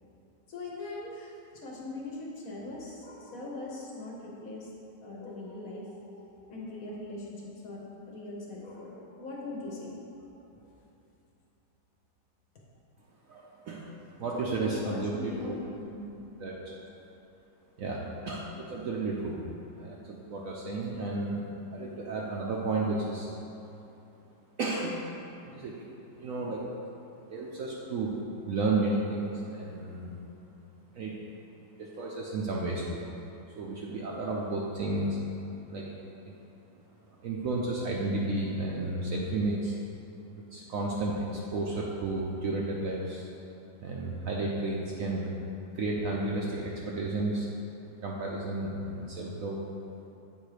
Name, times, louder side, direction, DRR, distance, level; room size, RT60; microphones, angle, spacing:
voice 1, 0.5-4.7 5.0-10.7 14.3-16.2, left 2 dB, 55° left, -3 dB, 1.2 m, -41 dB
voice 2, 13.3-13.9 14.2-15.6 16.4-16.8 17.8-23.3 24.6-25.0 25.4-25.9 26.1-26.7 27.3-28.2 28.5-30.1 30.9-31.2 31.7-33.0 33.5-35.2 35.7-35.9 36.2-36.3 37.2-39.8 40.5-43.3 43.8-45.3 45.7-47.5 48.0-49.6, right 2 dB, 65° right, -3 dB, 0.8 m, -32 dB
7.8 x 3.5 x 4.9 m, 2.8 s
omnidirectional pair, 1.9 m